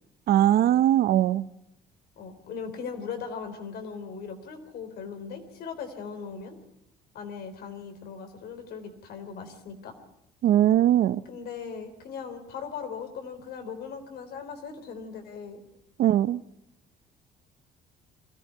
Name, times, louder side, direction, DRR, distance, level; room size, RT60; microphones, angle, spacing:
voice 1, 0.3-1.4 10.4-11.2 16.0-16.4, right 12 dB, 65° right, 16 dB, 0.7 m, -20 dB
voice 2, 2.2-6.6 7.1-9.9 11.3-15.6, left 6 dB, 70° left, 7 dB, 3.6 m, -39 dB
23.5 x 14.5 x 9.3 m, 0.82 s
cardioid pair, 110°, 17 cm